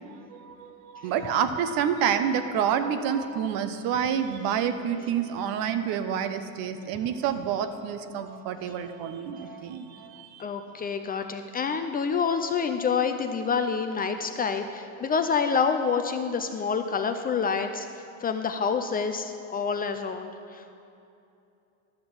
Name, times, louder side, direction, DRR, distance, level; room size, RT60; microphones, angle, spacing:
voice 1, 0.0-10.4 13.6-13.8, right 8 dB, 60° right, 9 dB, 0.9 m, -28 dB
voice 2, 10.4-17.9 18.2-20.8, left 6 dB, 25° left, 7 dB, 0.4 m, -27 dB
12.0 x 5.9 x 7.1 m, 2.7 s
supercardioid pair, 120°, 40 cm